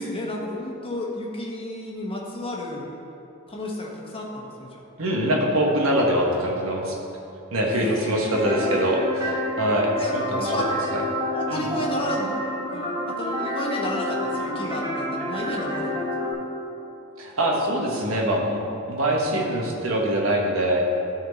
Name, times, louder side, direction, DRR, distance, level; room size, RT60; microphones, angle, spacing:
voice 1, 0.0-2.9 3.5-4.8 7.7-8.9 10.0-10.1 10.4-10.7 11.3-12.3 12.7-16.3, left 1 dB, 25° left, -2 dB, 1.2 m, -32 dB
voice 2, 5.0-7.0 7.5-10.5 10.9-11.0 11.5-11.7 17.2-18.6 18.9-21.0, right 1 dB, 80° right, -1 dB, 1.3 m, -23 dB
sound 1, 8.3-16.3, left 1 dB, 20° right, 1.5 m, -29 dB
13.0 x 4.4 x 4.1 m, 2.8 s
head